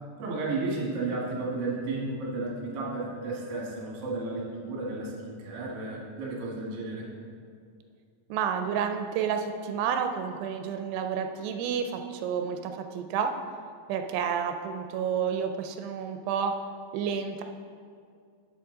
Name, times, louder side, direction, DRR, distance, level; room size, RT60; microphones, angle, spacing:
voice 1, 0.2-7.1, right 3 dB, 55° right, -3 dB, 1.8 m, -33 dB
voice 2, 8.3-13.3 13.9-16.5 16.9-17.4, right 7 dB, 85° right, 6 dB, 2.6 m, -30 dB
8.5 x 8.3 x 3.7 m, 2.3 s
omnidirectional pair, 4.8 m